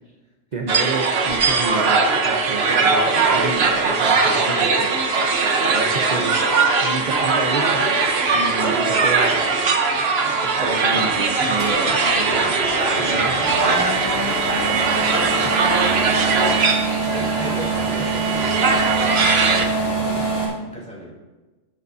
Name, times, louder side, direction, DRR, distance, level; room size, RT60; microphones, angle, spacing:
voice 1, 0.5-6.4 6.8-7.9 8.3-9.4 10.2-12.6 13.0-13.5 15.4-15.7 16.5-16.7 20.0-20.2, right 3 dB, 40° right, 1 dB, 0.9 m, -30 dB
sound 1, 0.7-19.7, right 4 dB, 55° right, 1.3 m, -20 dB
sound 2, 11.6-20.4, right 3 dB, 75° left, 4.0 m, -25 dB
voice 2, 17.0-21.1, right 1 dB, 5° left, -6 dB, 4.2 m, -38 dB
21.5 x 8.0 x 2.7 m, 1.2 s
omnidirectional pair, 1.3 m